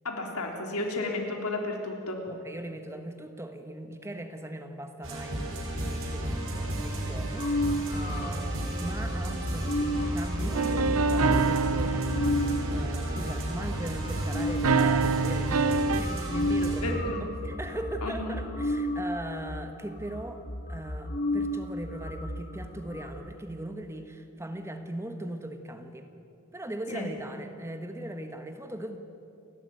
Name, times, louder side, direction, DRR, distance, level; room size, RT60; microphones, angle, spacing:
voice 1, 0.0-2.2 16.8-17.2 18.0-18.4 26.9-27.1, left 2 dB, 90° left, 1 dB, 3.5 m, -32 dB
voice 2, 2.3-12.4 12.7-17.1 17.4-20.4 20.7-26.1 26.5-29.0, right 1 dB, 10° right, 6 dB, 1.4 m, -39 dB
sound 1, 5.0-16.8, right 1 dB, 60° right, 4.9 m, -32 dB
sound 2, 7.4-14.8 15.4-15.5 15.7-23.1, left 1 dB, 40° left, 2.1 m, -33 dB
sound 3, 10.5-13.7 14.6-16.0, right 4 dB, 85° right, 0.9 m, -26 dB
29.0 x 12.0 x 9.5 m, 2.7 s
head